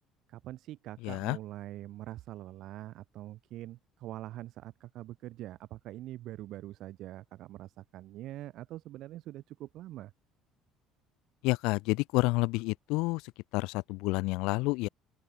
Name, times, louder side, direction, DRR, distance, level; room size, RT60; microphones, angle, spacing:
voice 1, 0.3-10.1, right 14 dB, 55° right, 5.6 m, -44 dB
voice 2, 1.0-1.4 11.4-13.2 13.5-14.9, left 24 dB, 85° left, 2.1 m, -29 dB
open air
cardioid pair, 165°, 0 cm